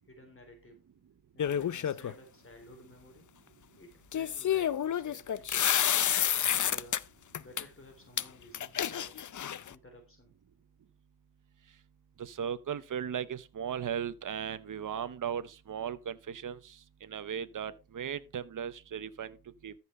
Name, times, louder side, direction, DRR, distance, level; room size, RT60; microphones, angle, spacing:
voice 1, 0.1-0.9 1.3-3.3 3.8-5.8 6.4-7.1 7.4-9.2 9.7-10.4, equal, 35° left, 3.2 m, -54 dB
sound 1, 1.4-2.1 4.1-7.0 7.3-7.6 8.2-8.3 8.5-9.7, left 9 dB, 55° left, 0.6 m, -29 dB
voice 2, 12.2-16.6 17.0-19.4 19.6-19.7, right 8 dB, 60° right, 0.8 m, -37 dB
13.5 x 5.8 x 4.2 m
cardioid pair, 70°, 36 cm